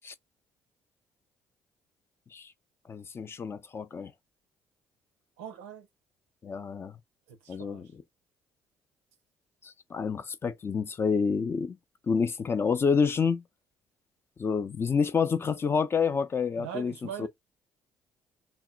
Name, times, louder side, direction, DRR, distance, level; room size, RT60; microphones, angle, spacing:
voice 1, 2.9-4.1 6.4-7.0 7.5-8.0 9.6-11.8 12.1-13.4 14.4-17.3, left 5 dB, 35° left, 0.4 m, -28 dB
voice 2, 5.4-5.9 7.6-7.8 16.6-17.3, right 9 dB, 90° right, 0.5 m, -40 dB
2.1 x 2.1 x 3.7 m
hypercardioid pair, 55°, 7 cm